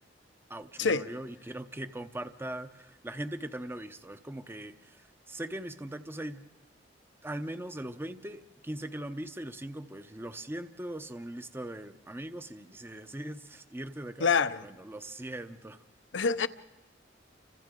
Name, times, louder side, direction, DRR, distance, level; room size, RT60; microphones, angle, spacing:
voice 1, 0.5-6.5 7.2-14.3 14.6-15.8, right 1 dB, 15° right, 0.7 m, -40 dB
voice 2, 14.2-14.7 16.1-16.5, left 5 dB, 70° left, 0.7 m, -26 dB
29.5 x 26.0 x 3.7 m
head